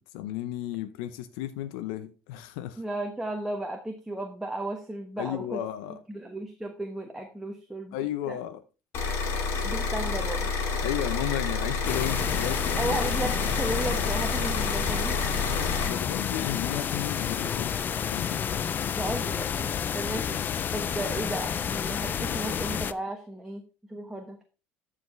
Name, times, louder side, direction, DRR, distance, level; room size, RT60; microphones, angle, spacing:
voice 1, 0.0-2.8 5.2-6.0 7.9-8.6 10.8-13.0 15.5-18.4, left 12 dB, 85° left, 0.7 m, -34 dB
voice 2, 2.8-5.6 5.9-7.9 8.3-8.4 9.6-10.5 12.8-15.2 18.9-19.7 19.9-20.4 20.7-23.6 23.9-24.4, right 1 dB, 5° right, 1.2 m, -34 dB
sound 1, 8.9-15.9, left 4 dB, 60° left, 2.6 m, -29 dB
sound 2, 11.8-22.9, left 8 dB, 40° left, 0.5 m, -30 dB
13.5 x 4.9 x 3.2 m
supercardioid pair, 100°, 5 cm